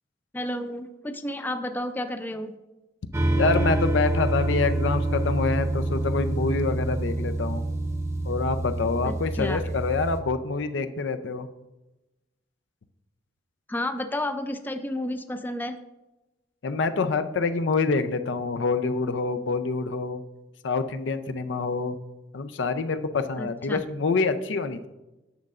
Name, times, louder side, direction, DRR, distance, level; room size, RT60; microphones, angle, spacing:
voice 1, 0.3-2.5 9.0-9.6 13.7-15.8 23.4-23.8, left 1 dB, 10° left, 8 dB, 0.3 m, -31 dB
sound 1, 3.1-10.2, right 2 dB, 15° right, 0.7 m, -27 dB
voice 2, 3.4-7.6 8.3-11.5 16.6-20.2 20.6-22.0 22.3-24.9, left 4 dB, 75° left, 9 dB, 0.5 m, -26 dB
10.5 x 6.4 x 2.4 m, 1.0 s
head